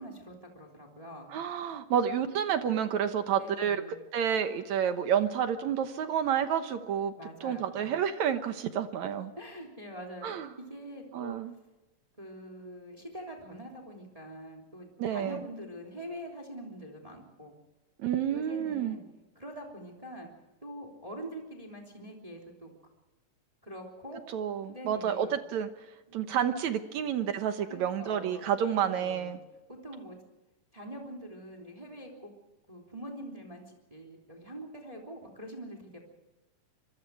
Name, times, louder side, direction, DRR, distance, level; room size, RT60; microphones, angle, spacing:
voice 1, 0.0-1.3 3.3-4.0 7.2-7.8 9.4-10.3 10.7-11.4 12.2-17.5 18.3-19.0 19.3-20.3 20.6-22.7 23.6-24.2 24.7-25.3 26.1-26.2 27.6-29.3 29.7-30.2 30.7-32.3 32.7-36.0, right 1 dB, 10° right, 1 dB, 3.1 m, -44 dB
voice 2, 1.3-3.8 4.1-7.1 7.4-9.3 10.2-10.5 11.1-11.5 15.0-15.4 18.0-19.0 24.3-25.7 26.1-29.4, right 8 dB, 65° right, 9 dB, 2.2 m, -29 dB
26.0 x 22.0 x 4.8 m, 1.1 s
omnidirectional pair, 3.9 m